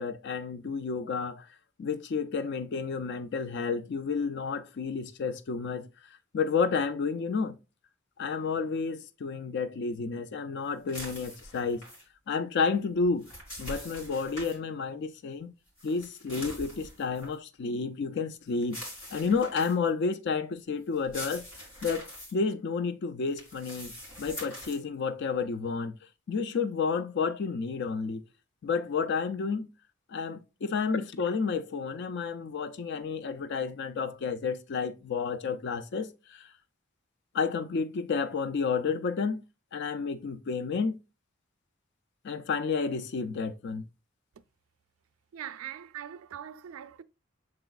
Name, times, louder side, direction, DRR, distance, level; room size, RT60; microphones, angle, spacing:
voice 1, 0.0-1.5 1.8-5.9 6.3-7.6 8.2-11.8 12.3-13.3 13.6-15.5 15.8-18.8 19.1-21.4 21.8-25.9 26.3-28.2 28.6-29.7 30.1-36.5 37.3-39.4 39.7-41.0 42.2-43.8, left 5 dB, 60° left, 0.4 m, -31 dB
sound 1, 10.9-12.0 13.0-14.6 15.8-17.3 18.6-19.9 20.9-22.3 23.3-24.8, equal, 85° left, 2.4 m, -43 dB
voice 2, 45.3-47.0, right 10 dB, 85° right, 0.4 m, -41 dB
6.0 x 3.9 x 2.3 m
head